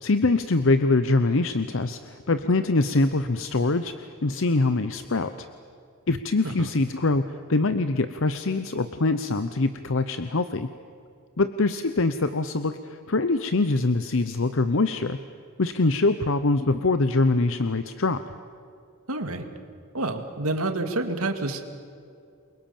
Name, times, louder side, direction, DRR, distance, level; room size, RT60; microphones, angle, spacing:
voice 1, 0.0-5.5 6.1-10.7 11.4-15.2 15.6-18.2, left 3 dB, 60° left, 10 dB, 0.8 m, -24 dB
voice 2, 19.1-19.5 19.9-21.6, right 2 dB, 75° right, 6 dB, 2.3 m, -28 dB
29.0 x 23.5 x 7.2 m, 2.4 s
head